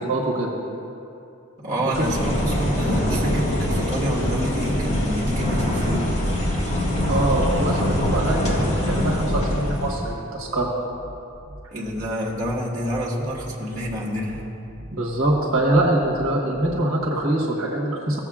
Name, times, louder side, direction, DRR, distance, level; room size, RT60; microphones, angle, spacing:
voice 1, 0.1-0.6 1.9-2.0 7.1-10.7 14.9-18.2, right 1 dB, 75° right, -3 dB, 1.3 m, -23 dB
voice 2, 1.6-6.1 11.7-14.4, equal, 35° right, -8 dB, 1.7 m, -27 dB
sound 1, 1.9-10.1, equal, 35° left, 1.7 m, -23 dB
sound 2, 10.0-17.0, right 1 dB, 10° right, 0.8 m, -42 dB
16.5 x 7.5 x 2.4 m, 2.7 s
head